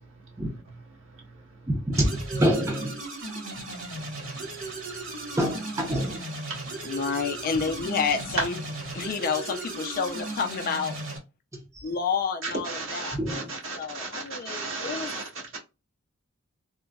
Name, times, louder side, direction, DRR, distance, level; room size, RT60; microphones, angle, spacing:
voice 1, 0.0-0.4 1.0-1.7 3.7-5.3 6.5-6.9 12.4-15.6, right 3 dB, 65° right, 1.6 m, -37 dB
voice 2, 1.7-3.0 5.4-6.3 11.7-11.8 13.1-13.5, equal, 15° right, 0.6 m, -26 dB
sound 1, 1.9-11.2, right 2 dB, 85° right, 1.5 m, -36 dB
voice 3, 6.8-8.6 8.9-11.0 11.8-13.2 13.7-15.1, left 5 dB, 45° left, 0.4 m, -29 dB
3.7 x 2.1 x 2.3 m
head